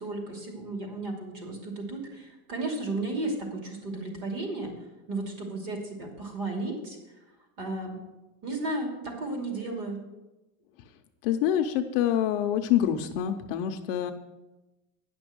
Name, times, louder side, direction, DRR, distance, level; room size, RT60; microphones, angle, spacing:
voice 1, 0.0-4.7 5.1-7.0 7.6-8.0 8.4-10.0, right 2 dB, 45° right, 2 dB, 2.8 m, -34 dB
voice 2, 11.2-14.1, left 10 dB, 40° left, 5 dB, 0.5 m, -26 dB
10.0 x 6.1 x 7.8 m, 1.0 s
supercardioid pair, 175°, 43 cm